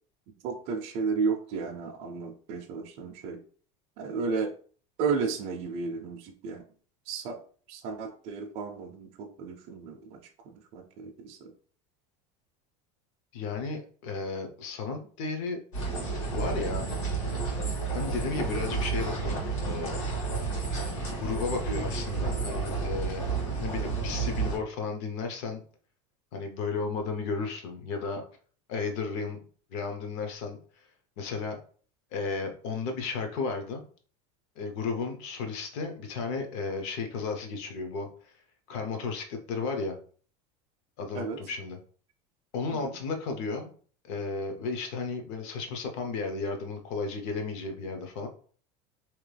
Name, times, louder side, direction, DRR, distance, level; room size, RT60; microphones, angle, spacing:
voice 1, 0.3-3.4 4.0-4.5 5.0-6.6 7.1-7.4 7.7-11.5 41.1-41.4 42.8-43.0, right 5 dB, 40° right, 2 dB, 0.4 m, -33 dB
voice 2, 13.3-15.6 16.3-16.9 17.9-20.0 21.1-23.2 23.6-25.6 26.3-28.2 28.7-29.4 29.7-30.6 31.2-31.6 32.1-33.8 34.6-38.1 38.7-40.0 41.0-41.8 42.5-43.7 44.0-48.3, left 4 dB, 60° left, 5 dB, 0.7 m, -33 dB
sound 1, 15.7-24.6, right 4 dB, 80° left, 1.5 m, -31 dB
2.9 x 2.2 x 3.2 m, 0.43 s
cardioid pair, 175°, 17 cm